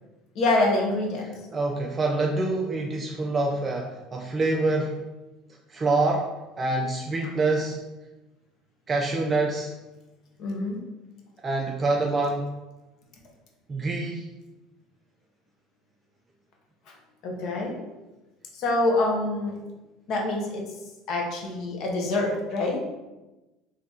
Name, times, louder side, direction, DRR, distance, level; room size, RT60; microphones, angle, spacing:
voice 1, 0.3-1.4 10.4-10.8 17.2-17.8 18.5-19.6 20.1-20.6 21.1-22.8, left 2 dB, 55° left, 0 dB, 0.9 m, -26 dB
voice 2, 1.5-5.0 5.7-6.3 6.6-7.8 8.9-9.7 11.4-12.5 13.7-14.3, right 2 dB, 20° right, 0 dB, 0.3 m, -26 dB
3.9 x 2.8 x 3.6 m, 1.1 s
cardioid pair, 145°, 0 cm